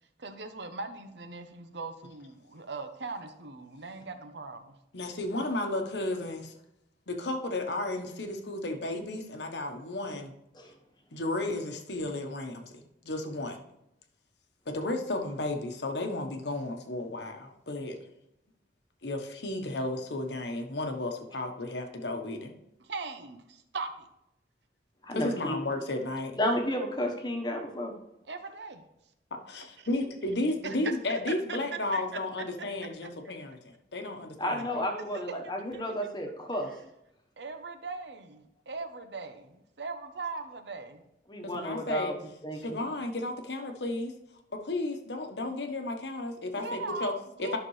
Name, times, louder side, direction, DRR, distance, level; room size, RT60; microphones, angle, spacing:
voice 1, 0.2-4.7 22.9-23.4 23.7-23.9 28.3-28.8 30.6-30.7 31.9-32.0 35.1-35.2 35.7-35.8 37.4-39.5 39.8-41.0 46.6-47.6, right 4 dB, 80° right, 8 dB, 0.8 m, -39 dB
voice 2, 4.9-6.5 7.1-10.3 11.1-13.6 14.7-18.0 19.0-22.5 25.1-26.3 29.3-33.6 33.9-34.8 41.4-42.1 42.5-44.1 44.5-47.1 47.4-47.6, left 2 dB, 75° left, 4 dB, 1.1 m, -33 dB
voice 3, 25.1-25.6 26.4-27.9 34.4-36.7 41.3-42.1 42.4-42.8, equal, 25° left, 3 dB, 1.1 m, -32 dB
11.5 x 5.9 x 3.2 m, 0.83 s
head